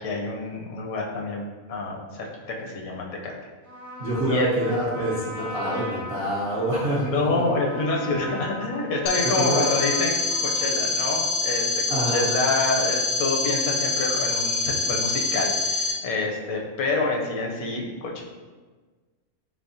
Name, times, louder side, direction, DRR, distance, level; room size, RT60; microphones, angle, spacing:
voice 1, 0.0-1.4 1.7-3.3 4.3-4.5 7.0-10.2 10.4-18.2, left 3 dB, 80° left, 0 dB, 1.1 m, -27 dB
Trumpet, 3.6-10.8, left 1 dB, 5° left, 0.5 m, -38 dB
voice 2, 4.0-7.6 8.1-8.4 9.2-9.6 11.9-12.3, right 1 dB, 55° right, -6 dB, 0.8 m, -26 dB
sound 1, 9.1-15.9, left 3 dB, 65° left, 0.7 m, -25 dB
3.4 x 3.1 x 2.6 m, 1.3 s
omnidirectional pair, 1.5 m